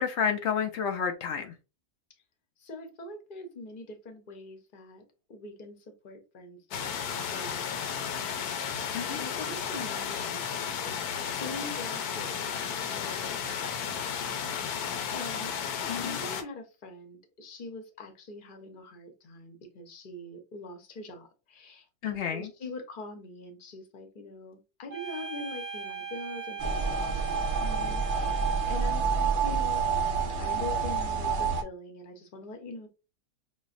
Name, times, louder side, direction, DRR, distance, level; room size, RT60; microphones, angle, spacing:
voice 1, 0.0-1.5 8.9-9.2 15.8-16.2 22.0-22.5, left 7 dB, 90° left, 5 dB, 0.6 m, -30 dB
voice 2, 2.6-5.0 5.3-15.5 15.9-29.8 30.4-32.9, left 2 dB, 45° left, 5 dB, 0.7 m, -44 dB
sound 1, 6.7-16.4, left 7 dB, 70° left, 1.1 m, -33 dB
sound 2, 24.9-29.1, right 7 dB, 10° right, 0.5 m, -40 dB
sound 3, 26.6-31.6, right 5 dB, 65° right, 0.7 m, -28 dB
6.0 x 2.0 x 2.5 m, 0.30 s
omnidirectional pair, 1.8 m